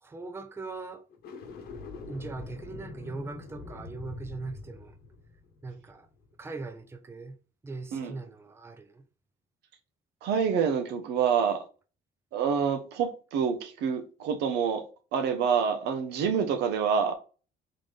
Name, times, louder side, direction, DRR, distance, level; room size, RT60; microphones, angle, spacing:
voice 1, 0.0-1.0 2.1-5.0 5.6-6.1 6.4-7.3 7.6-9.0, right 3 dB, 15° right, 0.5 m, -40 dB
sound 1, 1.1-6.4, left 3 dB, 70° left, 1.0 m, -44 dB
voice 2, 10.2-11.6 12.3-14.8 15.1-17.1, right 7 dB, 80° right, 0.8 m, -27 dB
3.8 x 3.8 x 3.2 m
cardioid pair, 110°, 17 cm